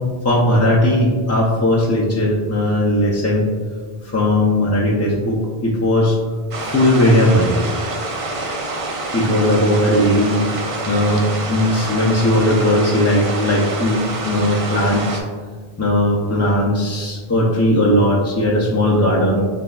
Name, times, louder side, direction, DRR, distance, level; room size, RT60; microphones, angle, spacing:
voice 1, 0.2-3.5 4.0-6.2 6.6-7.6 9.1-10.4 10.9-15.2 15.8-19.4, left 1 dB, 25° left, -5 dB, 0.3 m, -17 dB
sound 1, 6.5-15.2, right 2 dB, 45° right, 0.5 m, -27 dB
6.6 x 3.3 x 2.3 m, 1.5 s
omnidirectional pair, 1.0 m